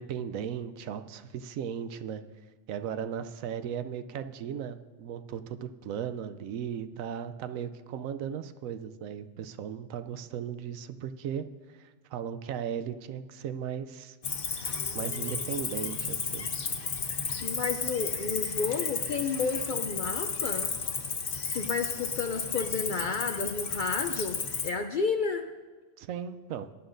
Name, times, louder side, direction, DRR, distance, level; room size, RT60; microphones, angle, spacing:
voice 1, 0.0-2.2 2.7-11.4 11.8-14.2 14.5-16.5 26.0-26.7, right 8 dB, 85° right, 10 dB, 1.0 m, -37 dB
Cricket, 14.2-24.7, left 5 dB, 45° left, 1.1 m, -33 dB
voice 2, 17.4-20.7 21.5-25.5, left 5 dB, 60° left, 7 dB, 0.5 m, -31 dB
18.0 x 11.0 x 2.6 m, 1.4 s
omnidirectional pair, 1.4 m